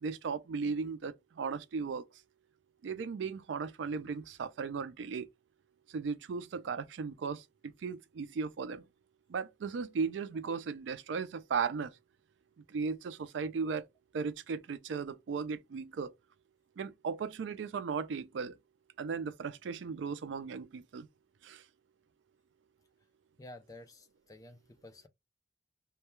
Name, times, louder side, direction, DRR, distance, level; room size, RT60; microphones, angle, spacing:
voice 1, 0.0-2.0 2.8-5.3 5.9-7.4 7.8-8.8 9.3-11.9 12.7-13.8 14.1-16.1 16.8-18.5 19.0-21.1 21.4-21.6, right 5 dB, 85° right, 0.4 m, -36 dB
voice 2, 23.4-25.1, left 1 dB, 20° left, 0.3 m, -51 dB
2.2 x 2.2 x 2.9 m
head